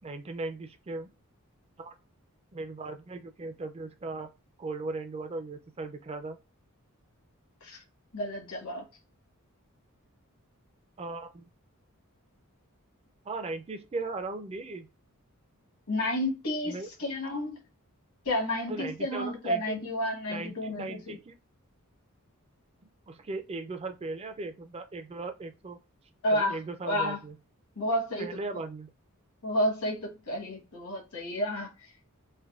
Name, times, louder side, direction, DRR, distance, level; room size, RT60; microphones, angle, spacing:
voice 1, 0.0-1.1 1.8-1.9 2.5-4.3 4.6-6.4 11.0-11.4 13.3-14.9 16.6-16.9 18.7-19.9 20.3-21.3 23.1-25.8 26.3-27.4 28.2-28.9, right 3 dB, 25° right, 0.4 m, -38 dB
voice 2, 8.1-8.8 15.9-17.6 18.2-21.2 26.2-26.6 26.8-27.2 27.8-28.3 29.4-32.1, left 1 dB, 75° left, 1.2 m, -31 dB
3.3 x 2.2 x 2.3 m
head